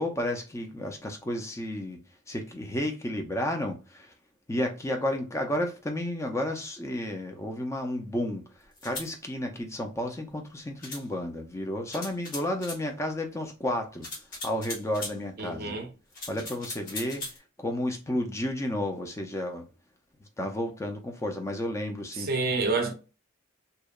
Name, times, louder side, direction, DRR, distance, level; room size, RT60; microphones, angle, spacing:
voice 1, 0.0-2.0 2.3-4.1 4.5-8.4 8.8-14.1 14.4-15.8 16.3-17.2 17.6-19.7 20.4-22.3, left 1 dB, 15° left, 0.3 m, -32 dB
sound 1, 8.8-9.1 10.8-11.0 11.9-12.8 14.0-15.2 16.1-17.4, left 2 dB, 40° left, 0.9 m, -39 dB
voice 2, 15.4-15.9 22.2-22.9, right 3 dB, 45° right, 0.5 m, -28 dB
2.7 x 2.1 x 2.2 m
head